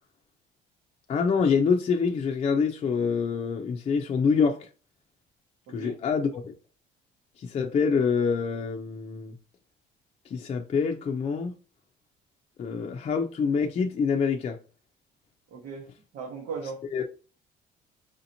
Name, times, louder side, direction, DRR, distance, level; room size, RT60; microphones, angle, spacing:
voice 1, 1.1-4.7 5.7-6.5 7.4-9.3 10.3-11.5 12.6-14.6 16.9-17.0, left 5 dB, 35° left, 0.5 m, -26 dB
voice 2, 15.5-16.8, right 5 dB, 80° right, 1.2 m, -38 dB
4.9 x 2.8 x 2.7 m
cardioid pair, 110°, 17 cm